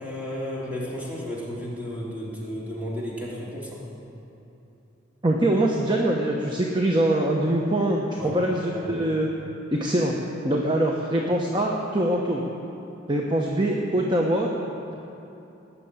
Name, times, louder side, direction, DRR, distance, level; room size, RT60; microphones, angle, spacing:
voice 1, 0.0-3.9 8.2-8.3 8.7-8.8, equal, 10° right, -6 dB, 3.2 m, -33 dB
voice 2, 5.2-9.3 9.7-10.2 10.4-12.4 13.1-14.5, right 1 dB, 25° right, -1 dB, 1.0 m, -23 dB
19.0 x 6.9 x 8.8 m, 2.9 s
head